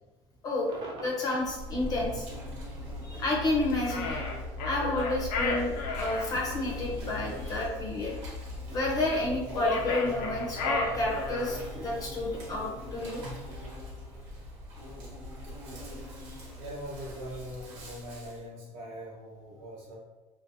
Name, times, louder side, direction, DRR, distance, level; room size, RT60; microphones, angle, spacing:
Cheering / Crowd / Fireworks, 0.7-6.0, right 1 dB, 40° right, 0.5 m, -50 dB
voice 1, 1.0-2.3 3.0-4.1 4.6-8.1 8.7-13.2, left 2 dB, 30° left, -2 dB, 0.5 m, -30 dB
Insect, 1.4-18.4, left 1 dB, 80° right, 1.0 m, -40 dB
sound 1, 3.9-6.3 9.5-11.6, left 3 dB, 90° left, 0.5 m, -33 dB
voice 2, 16.6-20.0, equal, 55° right, -4 dB, 0.9 m, -41 dB
2.5 x 2.2 x 2.6 m, 1.1 s
cardioid pair, 155°, 12 cm